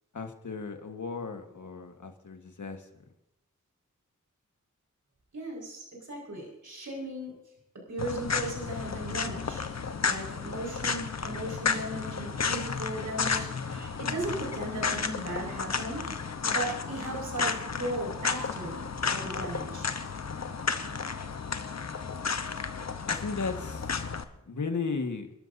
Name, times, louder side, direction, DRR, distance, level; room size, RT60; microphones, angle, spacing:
voice 1, 0.1-2.8 23.1-24.0 24.5-25.3, left 4 dB, 75° left, 5 dB, 1.6 m, -35 dB
voice 2, 5.3-7.3 7.9-9.7 10.0-16.0 16.3-18.8 19.1-19.9, right 1 dB, 75° right, -2 dB, 5.3 m, -37 dB
sound 1, 8.0-24.2, left 5 dB, 60° left, 1.0 m, -32 dB
27.5 x 12.0 x 2.7 m, 0.84 s
cardioid pair, 55°, 30 cm